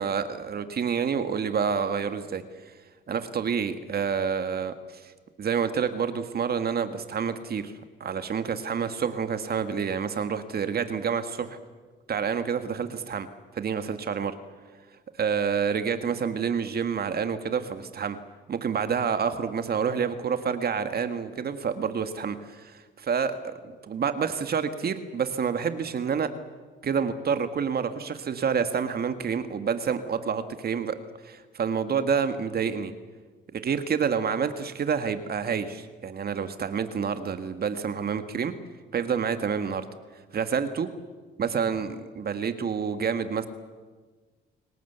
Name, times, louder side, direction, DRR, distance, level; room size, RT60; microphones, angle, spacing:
voice 1, 0.0-2.4 3.1-5.1 5.4-7.7 8.0-11.6 12.1-13.3 13.5-14.3 15.2-18.2 18.5-23.5 23.8-26.3 26.8-31.0 31.2-32.9 33.5-38.5 38.9-39.9 40.3-40.9 41.4-43.5, right 6 dB, 50° right, 9 dB, 1.8 m, -28 dB
29.0 x 18.0 x 8.2 m, 1.4 s
cardioid pair, 90°, 20 cm